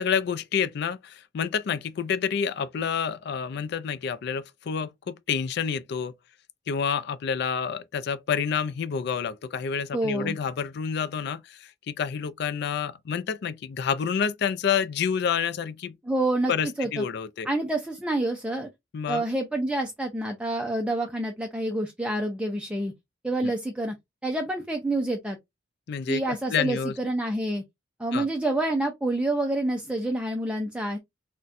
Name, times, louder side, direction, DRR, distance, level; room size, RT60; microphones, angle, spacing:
voice 1, 0.0-6.1 6.7-16.0 16.5-17.5 18.9-19.2 23.4-23.5 25.9-26.2 26.5-26.9 28.1-28.3, left 7 dB, 60° left, 0.4 m, -28 dB
voice 2, 9.9-10.4 16.0-16.5 16.8-17.0 17.4-18.7 19.1-22.9 23.2-23.9 24.2-25.4 26.1-27.6 28.0-31.0, right 1 dB, 5° right, 0.4 m, -27 dB
4.0 x 2.2 x 2.4 m
head